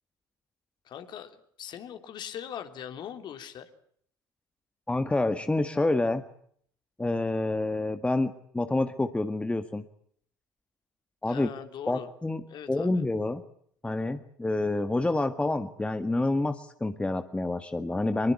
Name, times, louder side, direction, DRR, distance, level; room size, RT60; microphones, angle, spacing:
voice 1, 0.8-3.7 11.3-12.1 12.5-13.0, left 9 dB, 45° left, 8 dB, 3.2 m, -41 dB
voice 2, 4.9-6.2 7.0-9.8 11.2-11.5 11.9-13.4 13.8-18.3, left 2 dB, 10° left, 10 dB, 1.7 m, -28 dB
24.5 x 22.5 x 8.4 m, 0.64 s
figure-of-eight pair, 60°, 10 cm